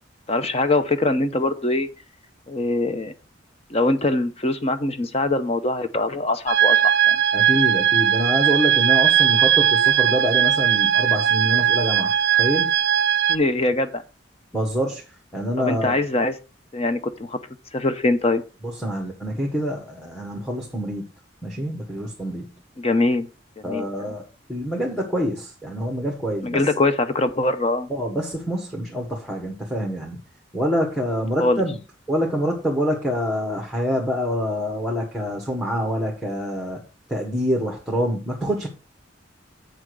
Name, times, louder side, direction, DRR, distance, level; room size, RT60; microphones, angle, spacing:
voice 1, 0.3-1.9 2.5-3.1 3.7-7.2 13.3-14.0 15.6-16.3 16.7-17.4 17.7-18.4 22.8-23.3 23.6-24.1 26.4-27.9 31.4-31.6, left 2 dB, 30° left, 0.7 m, -23 dB
sound 1, 6.5-13.4, right 9 dB, 55° right, 0.4 m, -19 dB
voice 2, 7.3-12.7 14.5-15.0 15.3-16.0 18.6-21.1 21.4-22.5 23.6-24.2 24.5-26.6 27.9-30.2 30.5-31.8 32.1-36.8 37.1-38.7, equal, ahead, 1.5 m, -26 dB
7.9 x 6.1 x 4.8 m
head